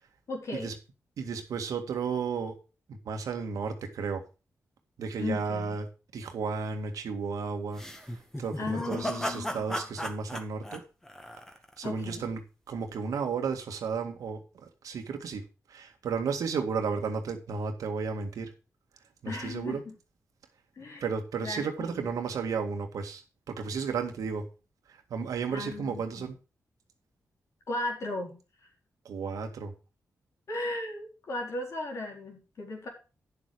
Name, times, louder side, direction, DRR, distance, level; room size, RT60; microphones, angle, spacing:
voice 1, 0.3-0.7 5.2-5.8 8.6-9.7 11.8-12.3 19.3-19.9 20.8-21.1 21.4-22.1 25.5-26.3 27.7-28.4 30.5-32.9, left 2 dB, 60° left, 1 dB, 4.2 m, -36 dB
voice 2, 1.2-2.6 2.9-4.2 5.0-5.9 6.1-7.8 8.1-10.8 11.8-15.4 15.7-18.5 19.2-19.8 21.0-24.5 24.9-26.4 29.1-29.7, right 5 dB, 90° right, 5 dB, 1.9 m, -33 dB
sound 1, 7.7-11.9, equal, 10° left, 1.7 m, -36 dB
9.7 x 7.3 x 4.8 m, 0.32 s
cardioid pair, 95°, 6 cm